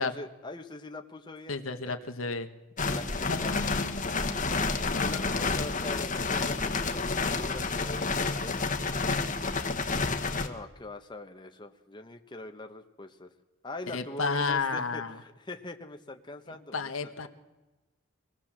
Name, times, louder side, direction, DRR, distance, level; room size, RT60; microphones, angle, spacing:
voice 1, 0.0-1.9 2.9-3.5 5.0-8.6 10.2-13.3 13.6-16.9, left 2 dB, 20° left, 5 dB, 1.2 m, -42 dB
voice 2, 1.5-2.5 3.3-4.3 4.9-5.9 13.9-15.2 16.5-17.3, left 4 dB, 80° left, 7 dB, 1.5 m, -33 dB
sound 1, 2.8-10.5, left 3 dB, 40° left, 1.6 m, -29 dB
24.0 x 18.0 x 7.5 m, 1.1 s
head